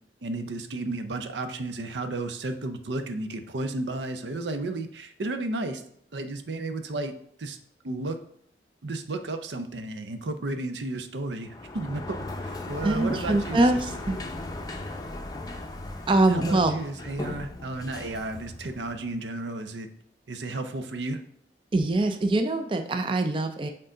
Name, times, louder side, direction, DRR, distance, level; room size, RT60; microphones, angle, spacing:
voice 1, 0.2-5.8 6.1-7.1 7.4-7.6 7.8-8.2 8.8-13.8 16.3-19.9 20.3-21.2, right 2 dB, 85° right, 8 dB, 0.6 m, -33 dB
Sliding door, 11.4-19.2, left 2 dB, 20° left, 0.5 m, -37 dB
voice 2, 12.8-14.2 16.1-16.8 21.7-23.7, right 2 dB, 30° right, 7 dB, 0.4 m, -23 dB
6.6 x 3.8 x 3.8 m, 0.67 s
head